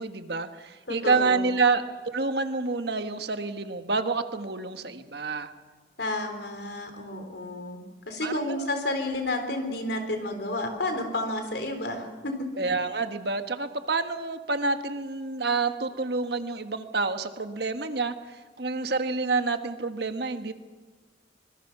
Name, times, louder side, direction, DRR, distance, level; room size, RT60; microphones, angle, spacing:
voice 1, 0.0-5.5 8.2-8.7 12.6-18.1 18.6-20.5, right 4 dB, 60° right, 8 dB, 1.4 m, -28 dB
voice 2, 0.9-1.4 6.0-7.8 8.1-12.3, left 1 dB, 60° left, 6 dB, 3.8 m, -31 dB
25.0 x 21.5 x 6.0 m, 1.4 s
head